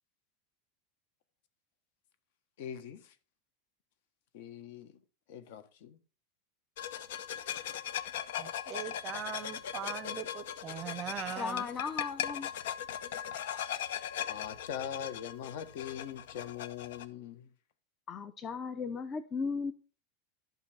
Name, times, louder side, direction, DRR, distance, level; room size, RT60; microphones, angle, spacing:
voice 1, 2.6-3.2 4.3-5.0 5.3-6.0 14.3-17.5, left 9 dB, 60° left, 1.2 m, -42 dB
sound 1, 6.8-17.1, left 10 dB, 75° left, 0.8 m, -39 dB
voice 2, 8.4-11.7, right 9 dB, 25° right, 0.6 m, -41 dB
voice 3, 11.4-12.5 18.1-19.7, left 5 dB, 20° left, 0.5 m, -36 dB
12.0 x 5.6 x 4.2 m
supercardioid pair, 175°, 0 cm